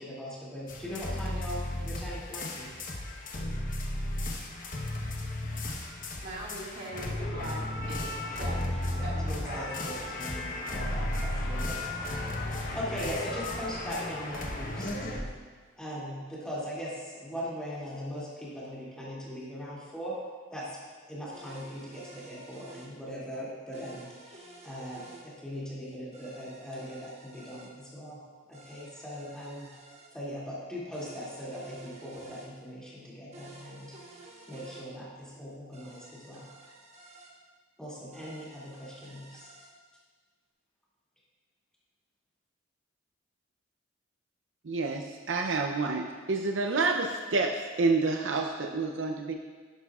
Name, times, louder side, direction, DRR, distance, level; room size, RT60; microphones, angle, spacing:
voice 1, 0.0-2.7 8.2-15.3 15.8-20.2 20.5-20.8 21.1-28.2 28.5-29.8 30.1-34.0 34.5-36.5 37.8-39.5, equal, 5° left, -8 dB, 2.6 m, -40 dB
sound 1, 0.7-15.2, left 1 dB, 45° left, 1.1 m, -34 dB
voice 2, 6.2-9.7, right 1 dB, 50° right, -4 dB, 2.0 m, -41 dB
sound 2, 21.3-22.9 23.7-25.3 26.1-27.7 28.5-30.1 30.9-32.5 33.3-34.9 35.7-37.3 38.1-39.7, right 2 dB, 35° right, 1.3 m, -52 dB
voice 3, 44.6-49.3, right 3 dB, 65° right, 3 dB, 0.6 m, -28 dB
11.0 x 10.5 x 2.4 m, 1.5 s
head